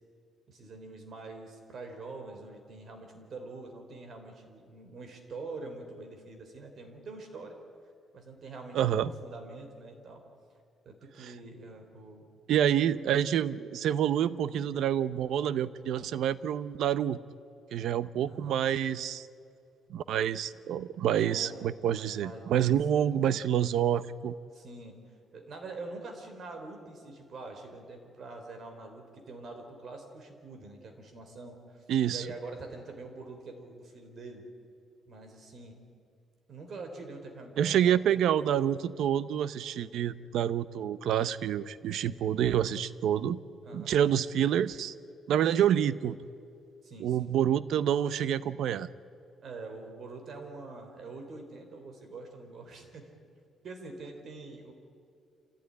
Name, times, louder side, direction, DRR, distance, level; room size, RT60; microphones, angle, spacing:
voice 1, 0.5-7.5 8.1-10.2 10.8-12.3 12.7-12.9 18.3-18.6 21.0-22.8 24.5-25.0 25.3-34.5 35.1-35.8 36.5-38.2 38.8-38.9 43.6-43.9 46.8-47.3 49.4-53.1 53.6-54.7, right 3 dB, 45° right, 4 dB, 4.0 m, -45 dB
voice 2, 8.7-9.1 12.5-17.2 17.7-19.3 19.9-24.3 31.9-32.2 37.6-43.4 43.7-44.9 45.3-46.2 47.0-48.9, right 10 dB, 75° right, 15 dB, 0.8 m, -27 dB
26.5 x 16.5 x 9.8 m, 2.4 s
cardioid pair, 150°, 0 cm